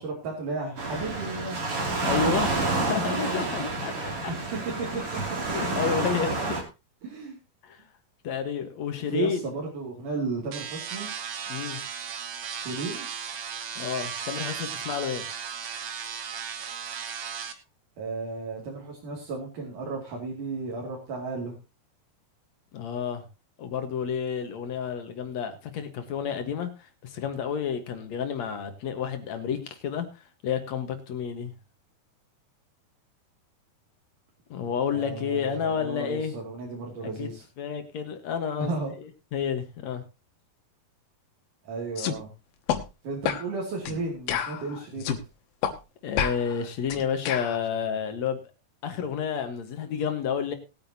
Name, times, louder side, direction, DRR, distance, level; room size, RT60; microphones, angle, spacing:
voice 1, 0.0-1.6 2.5-3.5 4.8-5.0 7.0-7.4 9.0-11.1 12.6-13.1 18.0-21.6 34.9-37.5 38.6-38.9 41.6-42.3 43.0-45.2, right 3 dB, 55° right, -2 dB, 3.9 m, -34 dB
Waves surf, 0.8-6.6, right 3 dB, 40° right, 3.3 m, -29 dB
voice 2, 2.0-2.5 2.8-4.3 5.5-6.6 7.6-7.8 8.2-9.4 11.5-11.8 13.8-15.3 22.7-23.2 23.6-26.7 27.0-30.1 30.4-31.5 34.5-36.4 37.2-37.3 37.6-38.7 39.3-40.0 46.0-48.4 48.8-50.6, left 7 dB, 55° left, 7 dB, 2.2 m, -30 dB
sound 1, 10.5-17.5, right 7 dB, 85° right, 1.3 m, -36 dB
sound 2, 42.0-42.2 42.7-42.8 43.3-43.5 43.9-44.0 44.3-45.2 45.6-45.8 46.2-47.6, left 9 dB, 75° left, 2.8 m, -29 dB
20.0 x 8.8 x 2.8 m, 0.28 s
omnidirectional pair, 4.5 m